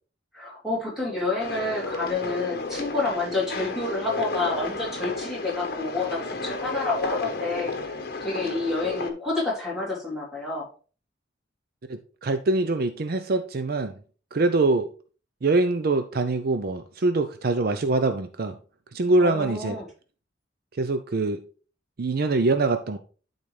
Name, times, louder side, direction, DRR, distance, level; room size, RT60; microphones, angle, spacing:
voice 1, 0.3-7.9 8.2-10.7 19.2-19.9, left 3 dB, ahead, -5 dB, 3.0 m, -29 dB
sound 1, 1.4-9.1, left 3 dB, 55° left, 1.0 m, -32 dB
voice 2, 11.9-13.9 14.3-14.9 15.4-18.5 18.9-19.8 20.8-21.4 22.0-23.0, right 2 dB, 55° right, 8 dB, 0.5 m, -24 dB
12.0 x 4.0 x 3.3 m, 0.38 s
head